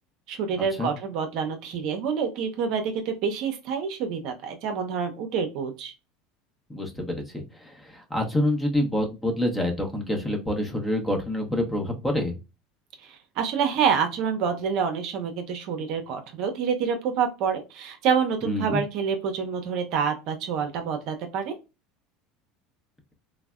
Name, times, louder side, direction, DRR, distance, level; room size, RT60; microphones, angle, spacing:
voice 1, 0.3-5.9 13.0-21.5, right 6 dB, 60° right, 6 dB, 0.6 m, -27 dB
voice 2, 6.7-12.4 18.4-18.8, left 1 dB, 10° left, 3 dB, 0.8 m, -27 dB
3.2 x 2.0 x 2.3 m, 0.27 s
supercardioid pair, 105°, 0 cm